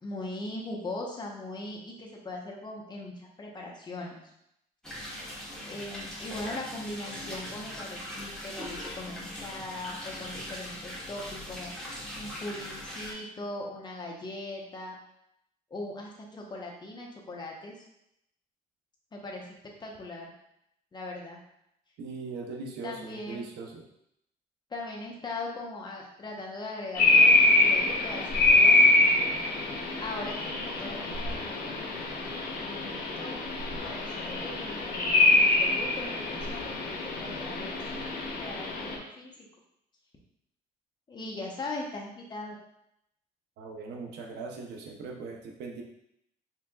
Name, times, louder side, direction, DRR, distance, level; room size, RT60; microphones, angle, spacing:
voice 1, 0.0-4.1 5.6-11.7 12.2-15.0 15.7-17.8 19.1-19.5 19.8-20.3 20.9-21.4 22.8-23.5 24.7-28.8 30.0-31.8 32.4-33.3 33.8-37.8 38.3-39.5 41.1-42.6, left 2 dB, 25° left, -1 dB, 0.9 m, -40 dB
sound 1, 4.8-13.1, equal, 5° left, 1.1 m, -40 dB
voice 2, 22.0-23.8 43.6-45.8, right 4 dB, 80° right, 1 dB, 0.7 m, -40 dB
sound 2, 26.9-39.0, left 2 dB, 65° left, 0.9 m, -25 dB
4.5 x 3.5 x 2.3 m, 0.79 s
cardioid pair, 110°, 17 cm